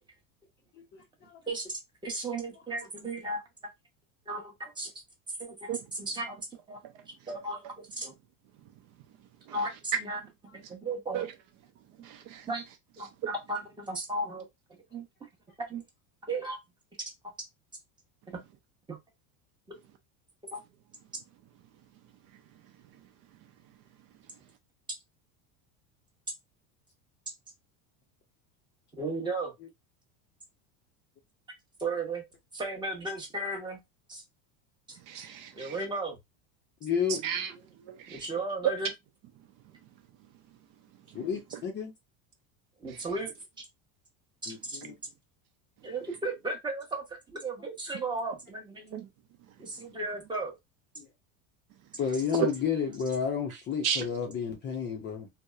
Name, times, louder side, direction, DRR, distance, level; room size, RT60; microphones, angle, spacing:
voice 1, 0.9-1.4 36.8-37.2 41.1-41.9 44.5-44.9 51.0-51.1 52.0-55.3, left 7 dB, 25° left, 0.5 m, -31 dB
voice 2, 1.5-3.4 4.3-4.9 5.4-5.7 6.0-6.8 7.3-8.1 9.5-10.2 10.7-11.2 12.5-12.7 13.0-14.4 14.9-15.0 15.6-15.8 16.3-16.6 18.3-18.4 18.9-19.0 20.5-20.6 29.0-29.5 31.8-32.2 32.5-33.8 34.1-34.2 34.9-35.0 35.5-36.2 38.1-38.9 42.8-43.6 44.4-44.8 45.8-49.0 49.6-50.6, right 2 dB, 10° right, 0.8 m, -35 dB
voice 3, 6.8-7.3 8.6-8.8 9.2-10.0 10.6-10.7 11.1-11.3 11.9-12.5 13.2-13.3 22.3-23.8 24.1-24.4 34.9-35.9 37.1-38.3 39.6-39.9 40.2-40.3 40.9-41.6 42.9-43.2 44.8-44.9 48.9-49.1 49.5-49.8 51.7-52.0 52.3-52.5 53.5-54.0, right 9 dB, 50° right, 0.5 m, -37 dB
2.8 x 2.0 x 2.2 m
supercardioid pair, 135°, 41 cm